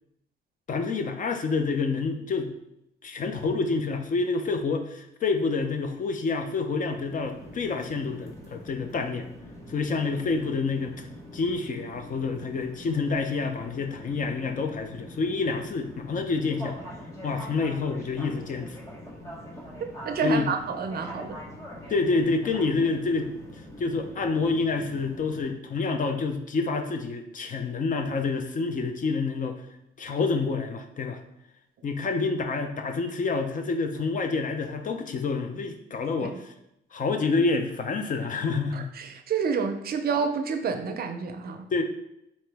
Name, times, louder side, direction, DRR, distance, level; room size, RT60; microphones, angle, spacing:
voice 1, 0.7-2.5 3.0-9.3 9.7-11.1 11.3-16.8 17.2-18.8 20.2-20.5 21.9-29.6 30.0-31.2 31.8-36.5 36.9-38.9 41.7-41.8, left 4 dB, 40° left, 6 dB, 0.5 m, -28 dB
sound 1, 6.7-25.5, equal, 15° left, 1.5 m, -43 dB
voice 2, 20.1-21.4 36.2-36.4 38.7-41.7, right 5 dB, 50° right, 7 dB, 0.5 m, -29 dB
4.2 x 2.8 x 3.3 m, 0.81 s
cardioid pair, 90°, 20 cm